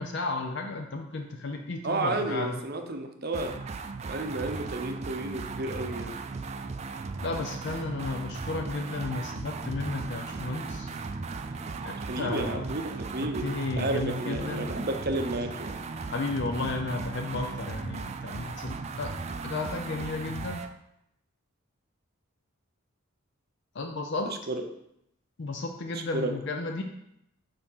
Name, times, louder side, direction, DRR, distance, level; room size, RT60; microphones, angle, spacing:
voice 1, 0.0-2.6 7.2-10.9 11.8-12.7 13.2-14.7 16.1-19.1 19.4-20.7 23.7-24.3 25.4-26.8, left 3 dB, 55° left, 3 dB, 0.5 m, -33 dB
voice 2, 1.8-3.6 4.0-6.1 11.9-15.8 24.3-24.6 26.1-26.3, right 2 dB, 45° right, 5 dB, 0.7 m, -32 dB
sound 1, 3.3-20.7, right 4 dB, 30° right, 0.3 m, -37 dB
6.7 x 3.6 x 5.6 m, 0.80 s
head